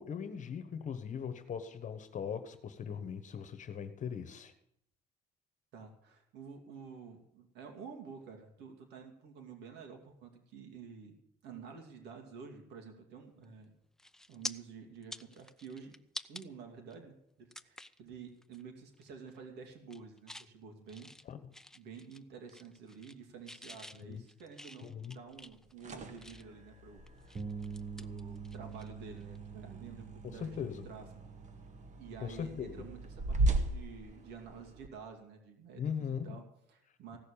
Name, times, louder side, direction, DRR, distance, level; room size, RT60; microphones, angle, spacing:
voice 1, 0.0-4.5 21.3-21.4 23.9-24.2 24.8-25.2 30.2-30.9 32.2-32.7 35.8-36.4, left 7 dB, 45° left, 11 dB, 1.2 m, -40 dB
voice 2, 5.7-11.2 11.4-13.7 14.3-16.0 16.3-21.1 21.7-27.4 28.0-31.0 32.0-37.2, right 6 dB, 80° right, 3 dB, 2.7 m, -50 dB
sound 1, 13.4-13.6 14.0-14.5 15.0-16.4 16.9-17.0 17.5-18.0 18.4-18.6 18.9-19.4 19.7-20.5 20.9-22.2 22.5-23.2 23.5-26.6 27.1-28.9 29.2-29.4 31.2-31.4, left 1 dB, 5° left, 0.6 m, -48 dB
sound 2, 25.5-34.9, right 2 dB, 45° right, 1.8 m, -38 dB
Bass guitar, 27.4-33.6, right 5 dB, 25° right, 1.4 m, -46 dB
16.0 x 6.6 x 8.9 m, 0.76 s
cardioid pair, 110°, 17 cm